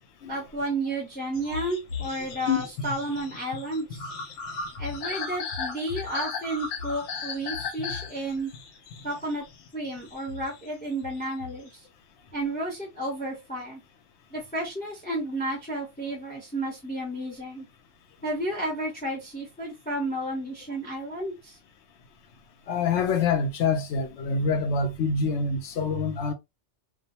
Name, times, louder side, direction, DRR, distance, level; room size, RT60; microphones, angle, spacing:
voice 1, 0.3-4.1 4.8-8.5 9.0-9.4 9.7-11.8 12.3-13.8 14.3-17.7 18.2-21.6, right 1 dB, 10° left, 0.8 m, -32 dB
sound 1, 1.3-11.8, left 5 dB, 90° left, 1.0 m, -36 dB
voice 2, 22.7-26.3, left 4 dB, 70° left, 0.9 m, -25 dB
2.4 x 2.2 x 2.7 m
omnidirectional pair, 1.3 m